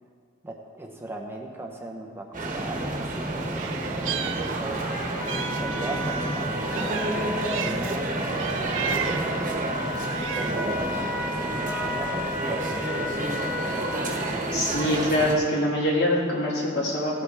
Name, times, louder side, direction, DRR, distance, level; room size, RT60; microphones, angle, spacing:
voice 1, 0.4-3.6 3.9-4.8 5.5-9.5 10.3-13.5, right 2 dB, 10° right, 0 dB, 0.8 m, -38 dB
sound 1, 2.3-15.4, right 2 dB, 40° right, 1.4 m, -29 dB
Meow, 3.5-4.9 5.3-8.0 8.4-9.4 9.9-10.8, right 8 dB, 65° right, 0.6 m, -34 dB
Trumpet, 4.8-14.4, left 2 dB, 40° left, 1.8 m, -35 dB
voice 2, 14.5-17.2, left 1 dB, 55° left, -3 dB, 2.3 m, -24 dB
16.5 x 8.8 x 3.5 m, 2.2 s
head